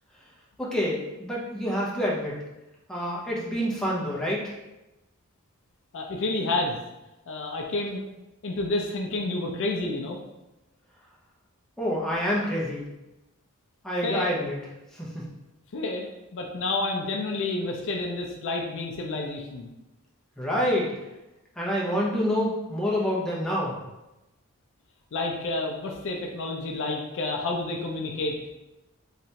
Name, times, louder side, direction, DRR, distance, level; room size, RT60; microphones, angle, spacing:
voice 1, 0.6-2.4 2.9-4.5 11.8-12.9 13.8-14.5 14.9-15.3 20.4-20.9 21.6-23.8, equal, 5° left, -6 dB, 0.6 m, -27 dB
voice 2, 5.9-6.8 7.3-8.0 8.4-10.2 14.0-14.3 15.7-16.1 16.3-19.7 25.1-28.4, left 2 dB, 60° left, 1 dB, 0.4 m, -29 dB
3.3 x 2.9 x 2.8 m, 0.98 s
head